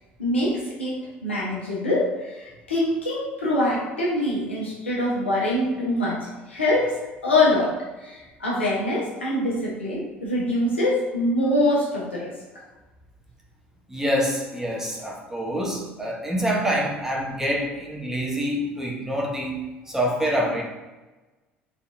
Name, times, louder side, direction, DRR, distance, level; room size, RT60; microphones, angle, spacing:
voice 1, 0.2-12.3, left 1 dB, 80° left, -5 dB, 1.0 m, -24 dB
voice 2, 13.9-20.6, equal, 5° right, -2 dB, 0.9 m, -26 dB
4.1 x 3.3 x 2.6 m, 1.2 s
figure-of-eight pair, 60°, 6 cm